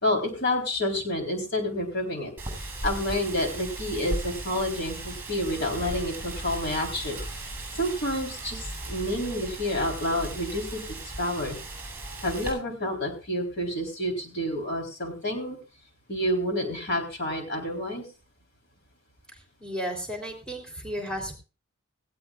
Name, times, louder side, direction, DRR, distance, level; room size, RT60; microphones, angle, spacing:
voice 1, 0.0-2.3 2.6-7.4 7.7-10.8 11.2-11.6 12.2-15.6 16.1-18.0, left 1 dB, 55° left, 3 dB, 3.9 m, -29 dB
Wind, 2.4-12.5, right 2 dB, 10° right, 7.6 m, -37 dB
voice 2, 19.6-21.4, equal, 5° left, 1 dB, 3.4 m, -33 dB
18.5 x 16.0 x 2.4 m, 0.33 s
head